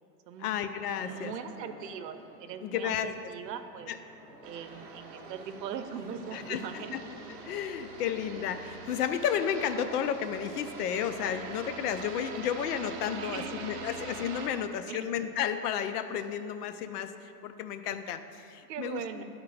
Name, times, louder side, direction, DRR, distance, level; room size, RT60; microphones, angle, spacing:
voice 1, 0.4-1.3 2.6-3.3 3.9-4.0 6.3-7.0 7.4-19.2, left 8 dB, 70° left, 10 dB, 0.6 m, -32 dB
sound 1, 0.9-11.4, left 1 dB, 15° left, 0.5 m, -52 dB
voice 2, 1.0-3.9 4.4-7.0 13.2-13.8 14.5-15.1 18.7-19.2, right 7 dB, 85° right, 9 dB, 0.7 m, -40 dB
sound 2, 4.4-14.5, right 5 dB, 40° right, 0.6 m, -44 dB
9.3 x 3.7 x 4.7 m, 2.7 s
supercardioid pair, 150°, 48 cm